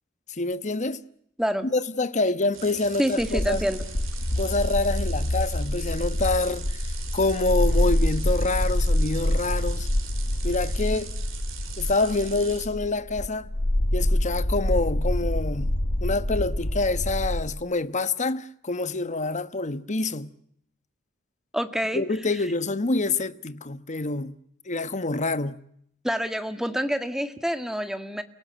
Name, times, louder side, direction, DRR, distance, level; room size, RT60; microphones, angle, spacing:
voice 1, 0.3-1.0 1.7-3.6 4.4-9.9 10.4-11.1 11.8-13.5 13.9-15.7 16.0-20.3 21.9-24.4 24.7-25.6, left 3 dB, 35° left, 1.1 m, -26 dB
sound 1, 2.5-12.7, right 7 dB, 65° right, 5.4 m, -42 dB
voice 2, 3.0-3.8 21.5-22.0 26.0-28.2, equal, ahead, 1.8 m, -27 dB
sound 2, 3.2-17.5, left 1 dB, 55° left, 1.6 m, -26 dB
29.5 x 17.5 x 9.1 m
head